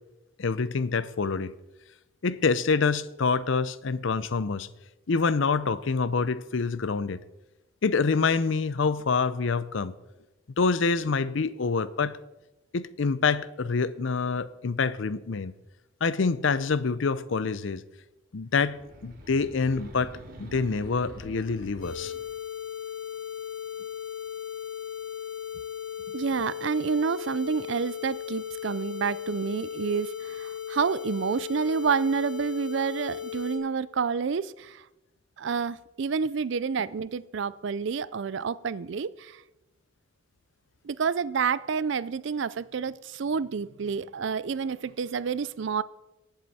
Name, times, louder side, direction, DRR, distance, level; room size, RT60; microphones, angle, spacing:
voice 1, 0.4-1.6 2.2-4.7 5.1-7.2 7.8-9.9 10.6-12.2 12.7-15.5 16.0-17.8 18.3-20.1 20.4-22.1, left 4 dB, 65° left, 17 dB, 0.5 m, -26 dB
sound 1, 18.6-22.5, right 1 dB, 45° right, 1.8 m, -46 dB
sound 2, 21.8-33.6, left 9 dB, 35° left, 2.9 m, -37 dB
voice 2, 26.1-34.8 35.4-39.4 40.8-45.8, right 5 dB, 60° right, 18 dB, 0.4 m, -29 dB
18.0 x 7.7 x 4.2 m, 0.98 s
head